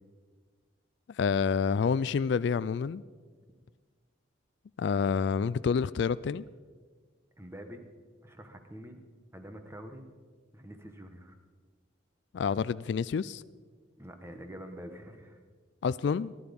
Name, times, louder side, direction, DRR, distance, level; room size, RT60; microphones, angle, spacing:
voice 1, 1.2-3.0 4.8-6.4 12.3-13.4 15.8-16.3, left 6 dB, 60° left, 17 dB, 0.3 m, -28 dB
voice 2, 7.4-7.8 8.2-9.0 9.3-10.1 10.5-11.4 14.0-15.4, equal, 15° right, 6 dB, 1.3 m, -46 dB
18.5 x 11.5 x 5.3 m, 1.5 s
head